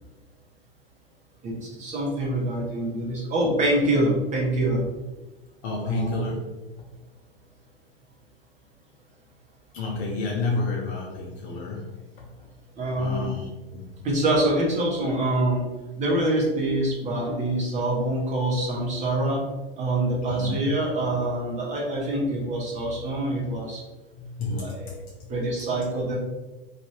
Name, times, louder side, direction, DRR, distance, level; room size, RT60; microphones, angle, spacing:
voice 1, 1.4-4.8 5.8-6.2 12.8-13.3 14.0-15.6 16.0-19.4 19.8-23.8 24.5-24.9 25.3-26.2, right 1 dB, 25° right, -3 dB, 0.9 m, -25 dB
voice 2, 5.6-6.4 6.8-7.0 9.7-12.3 13.0-13.9 20.3-20.6 24.2-24.8, left 3 dB, 30° left, -1 dB, 0.4 m, -30 dB
2.6 x 2.3 x 3.0 m, 1.2 s
figure-of-eight pair, 95°, 30 cm